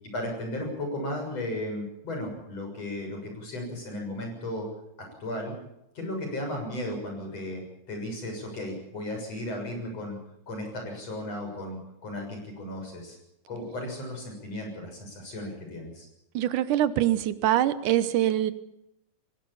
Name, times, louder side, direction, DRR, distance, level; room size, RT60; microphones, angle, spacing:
voice 1, 0.1-4.7 5.2-5.5 5.9-10.2 10.5-13.2 13.5-16.1, left 1 dB, 55° left, 2 dB, 7.9 m, -35 dB
voice 2, 16.3-18.5, right 12 dB, 90° right, 13 dB, 2.6 m, -24 dB
22.0 x 19.0 x 7.2 m, 0.83 s
omnidirectional pair, 3.5 m